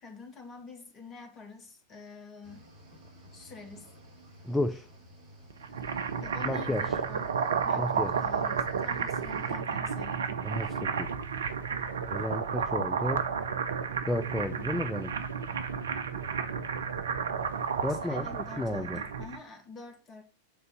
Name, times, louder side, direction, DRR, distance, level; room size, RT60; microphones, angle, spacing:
voice 1, 0.0-2.7 3.3-3.9 6.2-7.3 7.6-10.4 10.6-10.8 17.9-20.2, left 4 dB, 25° left, 1.9 m, -47 dB
Cricket / Waves surf, 2.4-9.6, right 1 dB, 50° right, 2.9 m, -53 dB
voice 2, 4.4-4.9 6.5-7.0 7.8-8.1 10.4-11.1 12.1-13.3 14.1-15.2 17.8-19.0, left 1 dB, 5° left, 0.5 m, -32 dB
sound 1, 5.5-19.4, right 6 dB, 65° right, 0.6 m, -32 dB
sound 2, 10.2-18.9, right 3 dB, 85° left, 1.6 m, -49 dB
7.5 x 4.0 x 5.4 m
figure-of-eight pair, 90°, 0 cm